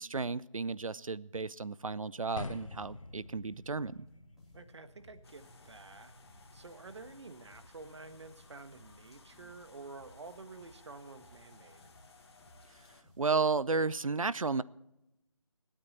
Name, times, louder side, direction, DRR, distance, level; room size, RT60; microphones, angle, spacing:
voice 1, 0.0-4.1 13.2-14.6, right 4 dB, 80° right, 0.6 m, -33 dB
sound 1, 2.4-8.5, left 2 dB, 70° left, 1.9 m, -49 dB
sound 2, 3.8-13.6, equal, ahead, 2.3 m, -63 dB
voice 2, 4.5-6.1 6.5-11.8, right 3 dB, 55° right, 1.4 m, -50 dB
sound 3, 5.2-13.0, left 3 dB, 50° left, 1.9 m, -59 dB
26.5 x 8.9 x 4.2 m
figure-of-eight pair, 155°, 17 cm